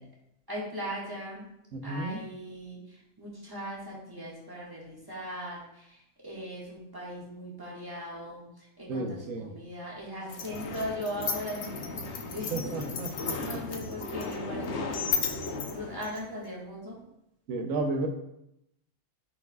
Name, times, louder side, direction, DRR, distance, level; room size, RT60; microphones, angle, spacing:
voice 1, 0.5-1.5 1.8-12.6 13.0-16.9, equal, 15° right, -5 dB, 1.7 m, -39 dB
voice 2, 1.7-2.2 8.9-9.5 12.5-13.4 17.5-18.1, right 2 dB, 75° right, 5 dB, 1.1 m, -32 dB
sound 1, 10.3-16.5, left 4 dB, 60° left, 0.9 m, -34 dB
8.9 x 4.6 x 2.3 m, 0.82 s
omnidirectional pair, 1.4 m